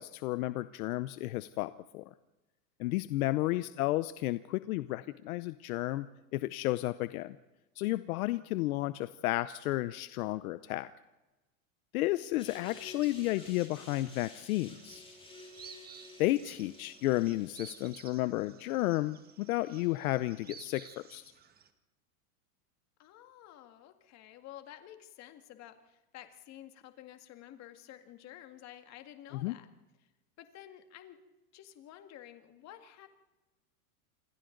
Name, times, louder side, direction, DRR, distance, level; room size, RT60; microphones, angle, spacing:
voice 1, 0.0-2.0 2.8-6.1 6.3-7.4 7.8-10.9 11.9-15.0 16.2-21.2 29.4-29.6, left 17 dB, 70° left, 14 dB, 0.8 m, -32 dB
sound 1, 12.4-18.0, left 2 dB, 10° left, 6.4 m, -53 dB
sound 2, 13.0-21.7, right 7 dB, 20° right, 1.5 m, -55 dB
voice 2, 23.0-29.7 30.4-31.2 31.5-33.1, left 12 dB, 35° left, 7 dB, 2.0 m, -51 dB
27.5 x 24.0 x 3.9 m, 1.1 s
supercardioid pair, 145°, 45 cm